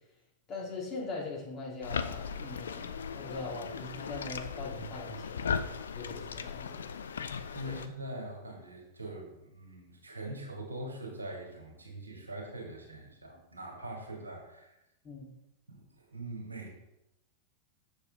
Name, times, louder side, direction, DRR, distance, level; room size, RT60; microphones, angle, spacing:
voice 1, 0.5-5.6 5.9-6.9 7.6-7.8 15.0-15.3, left 3 dB, 30° left, -4 dB, 2.6 m, -41 dB
sound 1, 1.8-7.9, left 6 dB, 65° left, 0.4 m, -37 dB
voice 2, 7.5-14.8 15.7-15.8 16.1-16.7, right 1 dB, 80° right, 0 dB, 1.7 m, -42 dB
6.8 x 6.6 x 3.5 m, 0.88 s
figure-of-eight pair, 90°, 0 cm